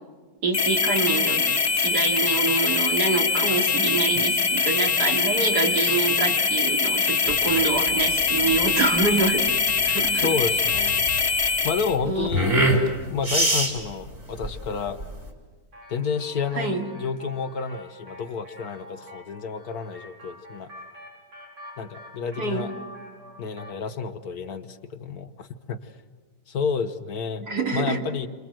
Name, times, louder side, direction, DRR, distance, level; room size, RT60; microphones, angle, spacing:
voice 1, 0.4-1.4 1.8-9.5 9.8-10.3 12.0-12.3 16.6-16.9 22.4-22.7 27.4-28.0, right 3 dB, 65° right, 1 dB, 3.4 m, -26 dB
sound 1, 0.5-12.0, left 4 dB, 30° left, 0.9 m, -23 dB
sound 2, 7.3-15.3, right 1 dB, 40° right, 4.9 m, -26 dB
voice 2, 10.1-11.0 11.6-12.5 13.1-15.0 15.9-20.7 21.8-22.7 23.4-25.8 26.5-27.4 27.7-28.3, left 5 dB, 65° left, 8 dB, 1.6 m, -30 dB
sound 3, 15.7-23.9, left 1 dB, 90° right, 5.9 m, -46 dB
29.0 x 27.0 x 7.7 m, 1.4 s
omnidirectional pair, 1.8 m